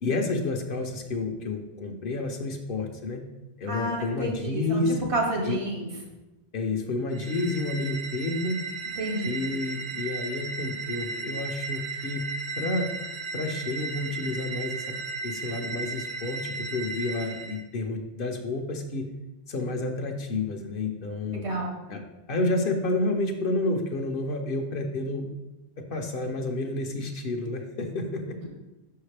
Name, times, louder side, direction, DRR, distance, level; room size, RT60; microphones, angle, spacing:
voice 1, 0.0-3.2 3.6-5.0 5.4-5.6 6.5-8.6 9.2-12.2 12.6-12.9 13.3-15.0 15.2-19.0 19.5-21.4 21.9-22.0 22.3-25.3 25.8-28.4, left 2 dB, 60° left, 4 dB, 0.8 m, -30 dB
voice 2, 3.7-5.9 9.0-9.4 21.3-21.7 28.4-28.5, right 1 dB, 80° right, 0 dB, 1.6 m, -30 dB
sound 1, 7.1-17.6, right 3 dB, 55° right, 0.7 m, -35 dB
5.7 x 5.6 x 3.3 m, 1.0 s
omnidirectional pair, 1.1 m